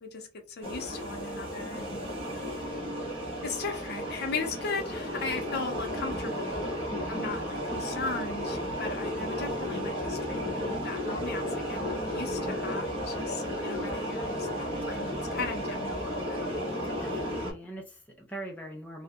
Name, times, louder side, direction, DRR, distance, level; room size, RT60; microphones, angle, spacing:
voice 1, 0.0-2.0 3.4-6.7 7.1-16.5, left 4 dB, 50° left, 0.6 m, -37 dB
sound 1, 0.6-17.5, equal, 30° right, 0.9 m, -33 dB
voice 2, 6.9-7.2 16.9-19.0, right 1 dB, 5° left, 0.3 m, -42 dB
2.6 x 2.1 x 2.3 m
head